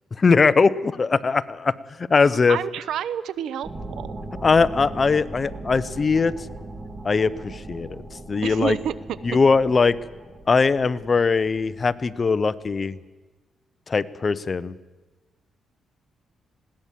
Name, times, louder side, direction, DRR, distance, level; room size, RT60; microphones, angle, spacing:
voice 1, 0.2-1.7 2.1-2.6 4.4-6.3 7.0-8.0 8.3-8.8 9.2-10.0 10.5-13.0 13.9-14.7, left 4 dB, 35° left, 15 dB, 0.7 m, -20 dB
voice 2, 2.5-4.2 8.4-8.9, right 9 dB, 85° right, 17 dB, 0.8 m, -29 dB
sound 1, 3.6-12.8, right 2 dB, 20° right, 2.4 m, -39 dB
20.5 x 17.5 x 7.4 m, 1.2 s
cardioid pair, 115°, 0 cm